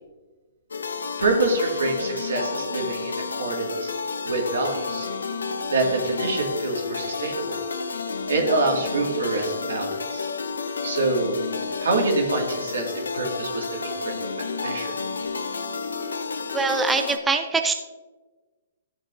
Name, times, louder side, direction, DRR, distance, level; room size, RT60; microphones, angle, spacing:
sound 1, 0.7-17.2, left 4 dB, 80° left, 0.7 m, -31 dB
voice 1, 1.2-3.9 4.2-5.1 5.7-7.6 8.3-10.3 10.8-11.4 11.8-14.9, right 3 dB, 75° right, 1 dB, 2.2 m, -26 dB
voice 2, 16.5-17.7, right 4 dB, 10° right, 6 dB, 0.5 m, -23 dB
13.0 x 7.5 x 2.7 m, 1.3 s
hypercardioid pair, 130°, 0 cm